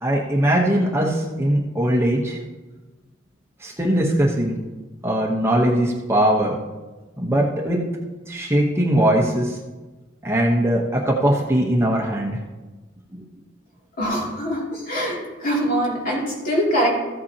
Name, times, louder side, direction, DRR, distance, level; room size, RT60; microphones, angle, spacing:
voice 1, 0.0-2.4 3.6-4.6 5.0-6.6 7.2-7.8 8.3-9.6 10.2-12.4 13.1-13.2, right 1 dB, 15° right, -2 dB, 1.0 m, -20 dB
voice 2, 14.0-16.9, equal, 45° left, -3 dB, 2.7 m, -23 dB
14.5 x 8.2 x 2.9 m, 1.2 s
head